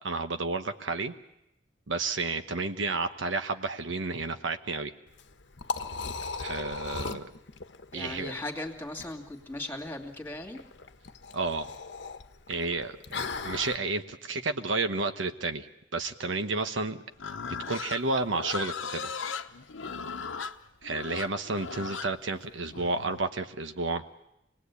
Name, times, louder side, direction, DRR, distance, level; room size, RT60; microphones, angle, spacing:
voice 1, 0.0-1.1 1.9-4.9 6.4-7.3 7.9-8.3 11.3-11.7 12.5-15.7 15.9-17.0 17.7-19.1 20.8-24.0, right 3 dB, 75° right, 8 dB, 1.1 m, -31 dB
Liquid, 5.1-13.8, left 4 dB, 65° left, 1.1 m, -38 dB
voice 2, 7.9-10.6, left 1 dB, 10° left, 3 dB, 2.4 m, -38 dB
Livestock farm animals working animals, 17.2-23.2, left 5 dB, 85° left, 1.0 m, -37 dB
26.0 x 19.0 x 8.3 m, 0.86 s
head